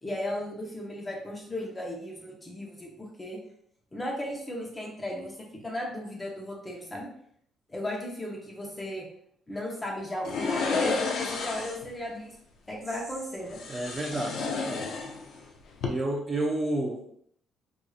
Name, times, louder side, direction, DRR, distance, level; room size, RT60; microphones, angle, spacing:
voice 1, 0.0-3.4 3.9-7.1 7.7-9.1 9.5-12.3 12.7-13.6, left 1 dB, 15° left, -1 dB, 0.8 m, -36 dB
sound 1, 10.2-11.9 13.5-15.4 15.7-15.9, left 4 dB, 65° left, 0.6 m, -31 dB
voice 2, 13.7-14.9 15.9-17.1, right 1 dB, 25° right, -1 dB, 0.5 m, -31 dB
4.7 x 2.6 x 2.4 m, 0.66 s
cardioid pair, 145°, 0 cm